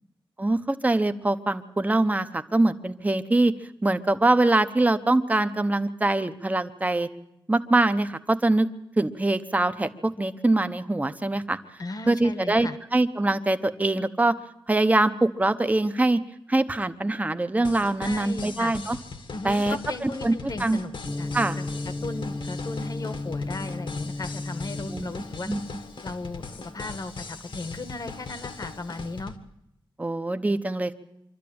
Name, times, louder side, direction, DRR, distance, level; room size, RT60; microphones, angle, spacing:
voice 1, 0.4-3.5 3.8-7.1 7.5-8.7 9.0-11.6 12.1-14.4 14.7-16.2 16.5-19.0 19.4-19.8 20.0-20.8 21.3-21.6 24.9-25.1 25.5-25.6 30.0-30.9, right 2 dB, 15° right, 10 dB, 0.9 m, -23 dB
voice 2, 11.8-12.8 18.0-18.7 19.3-20.9 21.2-21.3 21.6-21.7 22.0-25.5 26.0-26.4 26.7-29.3, left 2 dB, 45° left, 10 dB, 1.3 m, -36 dB
sound 1, 17.6-29.4, left 4 dB, 70° left, 1.7 m, -40 dB
Gong, 21.0-29.1, left 2 dB, 15° left, 0.7 m, -36 dB
25.0 x 12.5 x 8.7 m, 0.83 s
wide cardioid pair, 140°, 9 cm